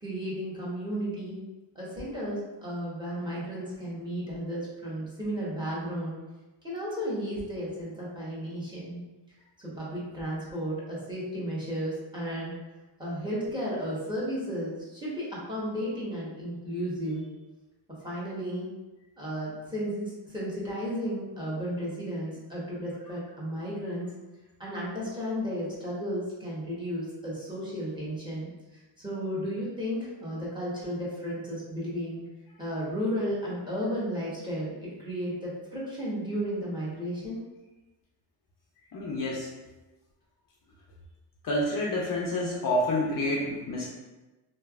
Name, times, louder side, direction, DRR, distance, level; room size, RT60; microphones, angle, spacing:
voice 1, 0.0-1.4 1.7-6.2 6.6-9.0 9.6-12.6 13.0-17.3 17.9-18.7 19.2-24.1 24.6-32.2 32.6-37.4, equal, 10° right, -7 dB, 1.0 m, -33 dB
voice 2, 38.9-39.5 41.4-43.9, left 1 dB, 45° left, -3 dB, 0.5 m, -28 dB
3.2 x 2.0 x 2.3 m, 1.1 s
cardioid pair, 95°, 47 cm